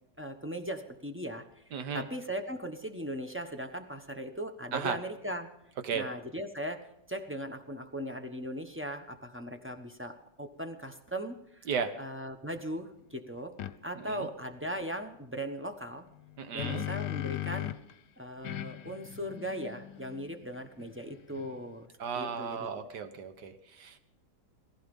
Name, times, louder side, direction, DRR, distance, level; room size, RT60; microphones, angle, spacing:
voice 1, 0.2-5.5 5.9-6.8 7.1-11.7 12.0-13.5 13.8-16.1 16.5-17.7 18.2-21.9 22.1-23.0, equal, 10° right, 6 dB, 0.9 m, -38 dB
voice 2, 1.7-2.1 4.7-5.0 5.8-6.1 11.7-11.9 14.0-14.3 16.4-16.9 22.0-24.0, right 6 dB, 70° right, 9 dB, 1.8 m, -35 dB
sound 1, 13.6-13.7 16.1-17.9 18.4-21.8, left 14 dB, 75° left, 1.3 m, -39 dB
16.5 x 15.0 x 5.4 m, 0.78 s
omnidirectional pair, 1.9 m